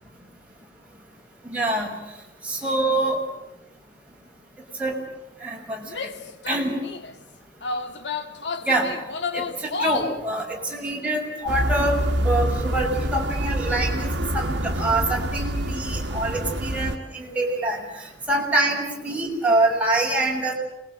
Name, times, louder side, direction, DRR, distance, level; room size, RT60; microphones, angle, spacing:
voice 1, 1.4-1.9 2.4-3.2 4.8-5.0 5.4-5.9 6.5-6.8 8.7-8.9 9.3-20.5, right 2 dB, 10° right, -2 dB, 6.4 m, -25 dB
Female speech woman speaking / Yell, 5.9-7.1 7.6-10.2, left 4 dB, 90° left, 1.8 m, -30 dB
sound 1, 11.5-17.0, right 1 dB, 80° right, 1.6 m, -26 dB
28.0 x 21.0 x 7.9 m, 0.95 s
head